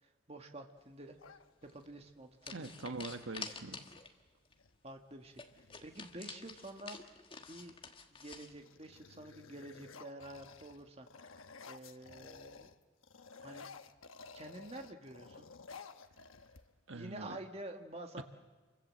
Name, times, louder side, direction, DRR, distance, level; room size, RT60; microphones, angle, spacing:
voice 1, 0.0-2.6 4.8-7.0 7.4-7.7 8.1-11.1 11.7-12.7 13.4-13.7 14.3-15.5 16.9-18.2, right 1 dB, 30° right, 4 dB, 1.8 m, -49 dB
sound 1, 1.2-2.1 3.8-3.9 4.3-4.8 5.3-6.8 7.5-7.9 8.2-12.8 13.0-17.0, left 4 dB, 90° left, 1.1 m, -54 dB
sound 2, 1.6-1.8 2.4-4.2 4.5-4.6 4.9-5.0 5.3-8.5, left 5 dB, 25° left, 1.5 m, -49 dB
voice 2, 2.5-3.8 16.9-17.4 18.2-18.3, right 3 dB, 75° right, 7 dB, 1.4 m, -43 dB
28.5 x 23.5 x 7.8 m, 1.3 s
head